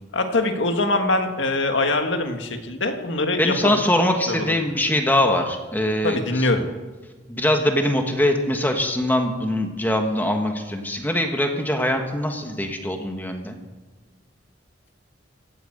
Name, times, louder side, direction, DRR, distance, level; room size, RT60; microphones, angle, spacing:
voice 1, 0.1-3.7 4.3-4.7 6.0-6.6, left 2 dB, 80° left, 5 dB, 1.8 m, -23 dB
voice 2, 3.4-6.5 7.3-13.6, left 1 dB, 10° left, 4 dB, 1.4 m, -22 dB
16.5 x 9.3 x 7.8 m, 1.3 s
head